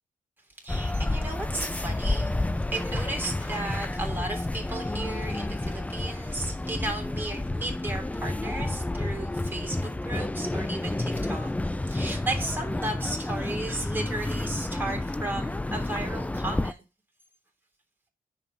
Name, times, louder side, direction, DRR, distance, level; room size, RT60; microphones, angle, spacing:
voice 1, 0.6-16.8, right 2 dB, 15° right, 0 dB, 3.2 m, -35 dB
sound 1, 0.7-16.7, left 2 dB, 10° left, 0.4 m, -30 dB
6.2 x 5.7 x 5.7 m, 0.32 s
cardioid pair, 60°, 15 cm